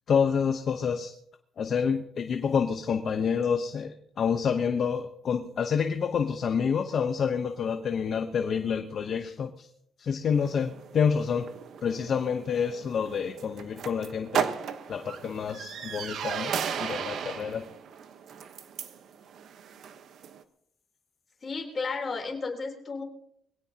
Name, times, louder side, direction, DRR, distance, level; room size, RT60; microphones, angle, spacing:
voice 1, 0.1-1.1 1.6-9.7 10.0-11.5 11.8-14.5 14.9-17.6, left 6 dB, 50° left, 6 dB, 0.9 m, -28 dB
sound 1, 10.3-20.4, right 7 dB, 65° right, 1.1 m, -36 dB
voice 2, 21.4-23.0, left 4 dB, 30° left, 1 dB, 3.6 m, -33 dB
22.5 x 17.0 x 2.9 m, 0.72 s
cardioid pair, 130°, 0 cm